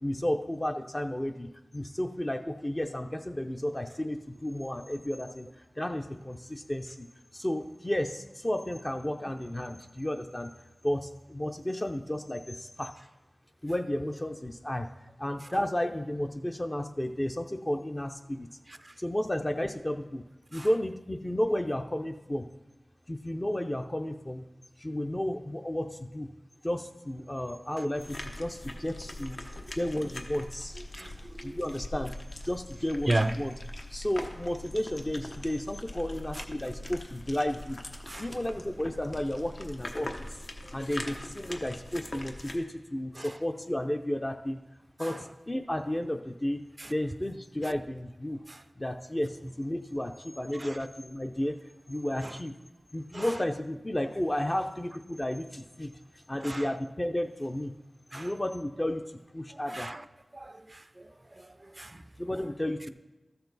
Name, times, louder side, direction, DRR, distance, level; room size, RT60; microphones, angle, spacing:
voice 1, 0.0-5.5 5.8-7.1 7.3-10.5 10.8-12.9 13.6-14.9 15.2-18.6 19.0-20.2 20.5-22.5 23.1-24.4 24.8-26.3 26.6-29.4 29.7-30.8 31.4-32.1 32.4-33.5 33.9-37.8 38.2-40.3 40.7-44.6 45.0-46.6 46.9-48.4 48.8-51.6 51.9-52.6 52.9-55.9 56.3-57.7 58.1-59.0 59.3-59.9 62.2-62.9, left 1 dB, 25° left, 0.5 m, -32 dB
sound 1, 28.0-42.6, left 1 dB, 65° left, 1.0 m, -42 dB
voice 2, 31.0-31.6 33.1-33.3 36.3-36.4 38.1-38.4 40.6-40.7 41.5-41.6 43.2-43.4 45.0-45.2 46.8-46.9 48.5-48.6 50.5-50.8 52.2-52.4 53.1-53.3 56.4-56.7 58.1-58.3 59.5-60.0 60.3-62.0, right 2 dB, 35° right, 0.3 m, -36 dB
13.5 x 6.8 x 4.0 m
wide cardioid pair, 65°, 0 cm